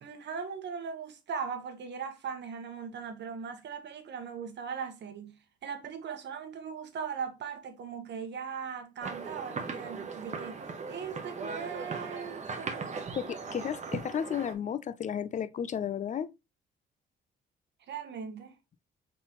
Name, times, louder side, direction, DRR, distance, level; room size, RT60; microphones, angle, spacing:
voice 1, 0.0-10.6 10.9-13.0 17.9-18.6, right 6 dB, 60° right, 1.0 m, -39 dB
sound 1, 9.0-14.5, right 5 dB, 35° right, 0.9 m, -38 dB
voice 2, 13.2-16.3, left 8 dB, 40° left, 0.4 m, -33 dB
3.9 x 3.8 x 2.9 m
cardioid pair, 90°, 20 cm